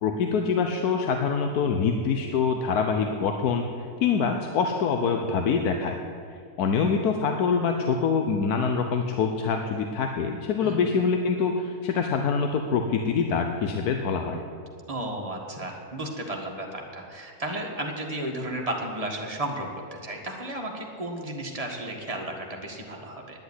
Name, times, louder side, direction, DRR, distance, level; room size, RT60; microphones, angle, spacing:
voice 1, 0.0-6.0 6.6-14.4, left 5 dB, 85° left, 4 dB, 1.3 m, -25 dB
voice 2, 14.9-23.4, right 1 dB, 25° right, 0 dB, 1.7 m, -33 dB
10.5 x 8.3 x 9.7 m, 2.3 s
omnidirectional pair, 1.6 m